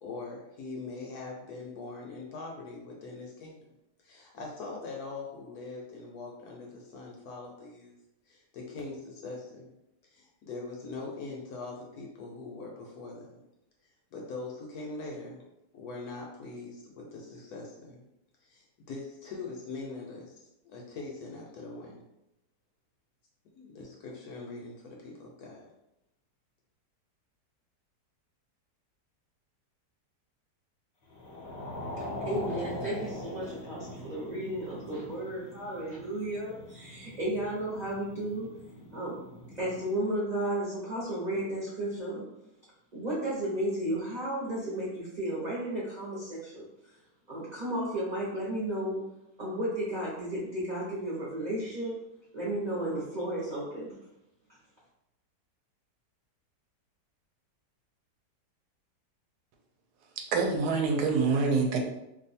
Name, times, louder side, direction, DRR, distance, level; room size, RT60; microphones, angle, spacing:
voice 1, 0.0-3.6 4.0-8.0 8.3-9.7 10.0-13.4 14.1-15.4 15.7-18.0 18.4-22.0 23.5-25.7, left 3 dB, 70° left, -1 dB, 1.0 m, -42 dB
sound 1, 31.1-39.8, left 1 dB, 55° left, 0.7 m, -42 dB
voice 2, 32.0-38.5 38.9-39.2 39.5-42.3 42.9-47.0 47.3-49.0 49.4-52.0 52.3-54.0, right 1 dB, 40° right, -8 dB, 0.7 m, -33 dB
voice 3, 60.2-61.8, right 4 dB, 75° right, 3 dB, 1.1 m, -26 dB
2.7 x 2.4 x 4.1 m, 0.87 s
omnidirectional pair, 1.8 m